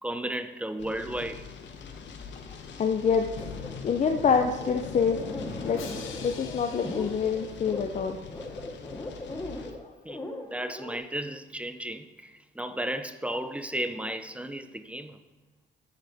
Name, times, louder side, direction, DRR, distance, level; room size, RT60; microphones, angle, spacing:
voice 1, 0.0-1.5 4.4-4.5 10.0-15.2, right 1 dB, 5° right, 10 dB, 0.6 m, -34 dB
sound 1, 0.8-9.7, left 5 dB, 65° left, 1.0 m, -44 dB
voice 2, 2.8-3.3 3.8-5.2 5.6-5.8 6.2-8.2, left 6 dB, 40° left, 5 dB, 0.6 m, -26 dB
Drum, 3.4-8.2, left 6 dB, 85° left, 1.1 m, -42 dB
sound 2, 3.4-11.0, left 2 dB, 15° left, 1.1 m, -39 dB
9.9 x 6.6 x 3.5 m, 1.2 s
cardioid pair, 90°, 20 cm